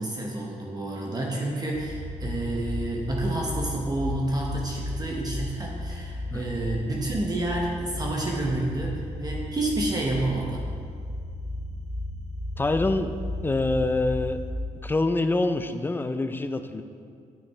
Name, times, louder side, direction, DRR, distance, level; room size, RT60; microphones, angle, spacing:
voice 1, 0.0-10.7, right 2 dB, 30° right, -1 dB, 0.9 m, -29 dB
sound 1, 1.7-14.5, left 1 dB, 45° right, 1.5 m, -34 dB
voice 2, 12.6-13.1 13.4-14.4 14.8-16.8, left 2 dB, 15° left, 9 dB, 0.4 m, -25 dB
8.6 x 5.1 x 4.6 m, 2.3 s
cardioid pair, 105°, 13 cm